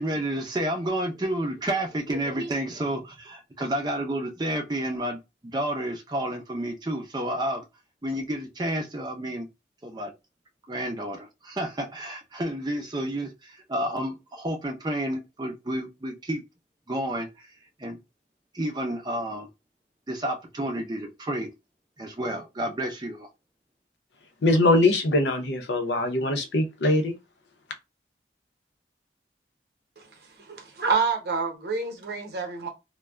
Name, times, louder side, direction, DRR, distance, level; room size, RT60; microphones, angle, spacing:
voice 1, 0.0-7.6 8.0-9.5 9.8-10.1 10.7-16.4 16.9-17.3 17.8-18.0 18.5-19.5 20.1-21.5 22.0-23.3, right 1 dB, 25° right, 0.5 m, -30 dB
voice 2, 24.4-27.2, left 2 dB, 75° left, 0.6 m, -22 dB
voice 3, 30.5-32.7, right 4 dB, 60° right, 0.8 m, -28 dB
2.3 x 2.1 x 3.4 m
head